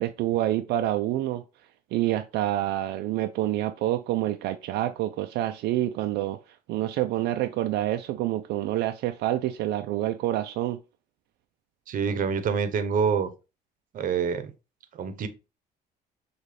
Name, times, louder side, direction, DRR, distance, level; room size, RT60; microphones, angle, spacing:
voice 1, 0.0-1.4 1.9-10.8, right 14 dB, 80° right, 0.4 m, -27 dB
voice 2, 11.9-13.3 13.9-14.5 14.9-15.3, right 6 dB, 55° right, 0.7 m, -26 dB
6.6 x 2.4 x 3.2 m
cardioid pair, 110°, 17 cm